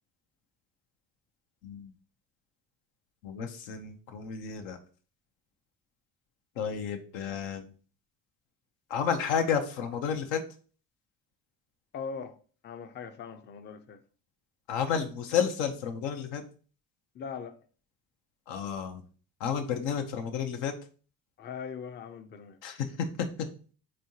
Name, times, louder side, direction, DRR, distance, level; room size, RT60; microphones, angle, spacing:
voice 1, 3.2-4.8 6.6-7.7 8.9-10.4 14.7-16.4 18.5-19.0 19.4-20.7 22.6-22.9, left 7 dB, 85° left, 0.7 m, -31 dB
voice 2, 11.9-12.4 12.6-14.0 17.1-17.6 21.4-22.6, left 6 dB, 25° left, 0.4 m, -40 dB
3.7 x 3.3 x 2.7 m
supercardioid pair, 65°, 42 cm